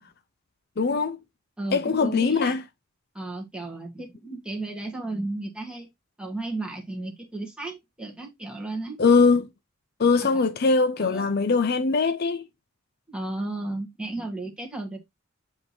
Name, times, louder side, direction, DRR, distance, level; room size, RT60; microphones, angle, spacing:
voice 1, 0.8-1.2 1.7-2.6 9.0-9.5 10.0-12.5, left 4 dB, 50° left, 0.6 m, -21 dB
voice 2, 1.6-2.6 3.1-5.9 6.2-9.0 10.2-10.4 11.0-11.4 13.1-15.0, right 2 dB, 5° right, 1.6 m, -34 dB
7.7 x 3.0 x 4.2 m
head